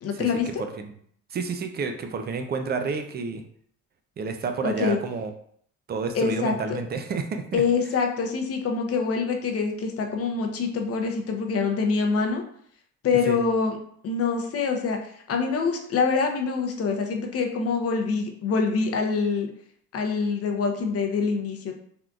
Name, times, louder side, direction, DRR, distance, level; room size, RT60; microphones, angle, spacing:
voice 1, 0.0-0.6 4.6-5.0 6.1-6.8 7.5-12.4 13.0-13.8 14.0-19.5 19.9-21.7, left 5 dB, 50° left, 3 dB, 0.6 m, -25 dB
voice 2, 0.6-0.9 1.3-3.4 4.2-5.3 5.9-7.6 13.3-13.4, right 5 dB, 35° right, 6 dB, 0.4 m, -30 dB
3.6 x 2.4 x 2.3 m, 0.63 s
cardioid pair, 90°, 30 cm